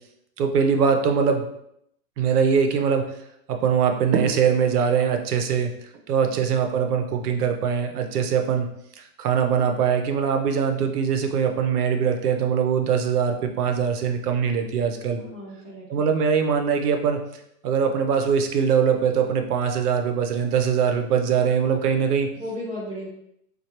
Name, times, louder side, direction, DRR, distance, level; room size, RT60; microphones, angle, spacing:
voice 1, 0.4-1.5 2.2-3.1 3.5-8.7 9.0-15.2 15.9-17.2 17.6-22.3, right 6 dB, 70° right, 5 dB, 0.6 m, -22 dB
voice 2, 15.2-16.1 22.4-23.1, left 1 dB, 25° left, -9 dB, 0.4 m, -35 dB
3.2 x 2.3 x 2.9 m, 0.76 s
hypercardioid pair, 165°, 48 cm